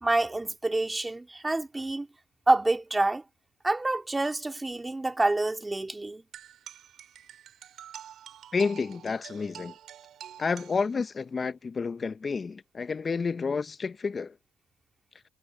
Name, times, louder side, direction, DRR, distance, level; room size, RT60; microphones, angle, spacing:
voice 1, 0.0-2.1 2.5-3.2 3.6-6.2, right 2 dB, 15° right, 2.8 m, -27 dB
sound 1, 6.3-11.3, right 10 dB, 60° right, 7.4 m, -48 dB
voice 2, 8.5-9.7 10.4-14.4, left 5 dB, 35° left, 0.9 m, -30 dB
supercardioid pair, 80°, 0 cm